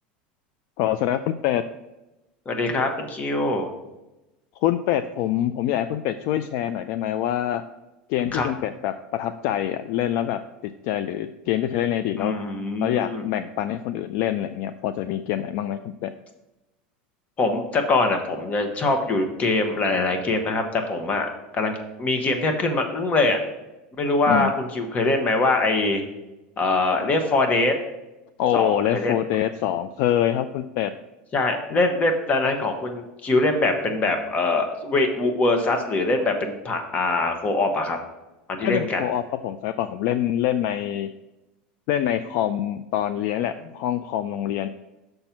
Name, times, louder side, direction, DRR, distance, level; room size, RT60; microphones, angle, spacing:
voice 1, 0.8-1.6 4.6-7.6 8.1-12.4 12.8-16.1 24.3-24.5 28.4-30.9 38.6-41.1 41.9-44.7, left 11 dB, 60° left, 11 dB, 0.4 m, -25 dB
voice 2, 2.5-3.7 8.3-8.5 12.2-13.2 17.4-21.3 21.5-23.4 24.0-26.0 26.6-27.8 28.5-29.1 31.3-38.0 38.5-39.0, left 2 dB, 30° left, 5 dB, 1.2 m, -23 dB
6.5 x 4.4 x 5.9 m, 1.0 s
supercardioid pair, 115°, 5 cm